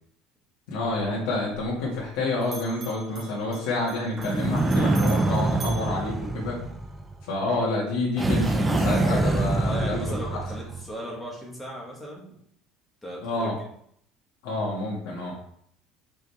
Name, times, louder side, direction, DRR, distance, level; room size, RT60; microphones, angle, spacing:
voice 1, 0.7-6.6 7.3-10.3 13.2-13.5 14.4-15.4, left 2 dB, 80° left, -6 dB, 2.0 m, -28 dB
Bell, 0.8-2.2 2.4-6.9, right 4 dB, 25° right, 1.6 m, -45 dB
sound 1, 4.2-7.2 8.2-10.9, right 2 dB, 10° right, 0.4 m, -25 dB
voice 2, 9.6-12.3 13.0-13.5, equal, 5° left, -3 dB, 1.5 m, -37 dB
5.4 x 5.1 x 3.5 m, 0.66 s
cardioid pair, 175°, 0 cm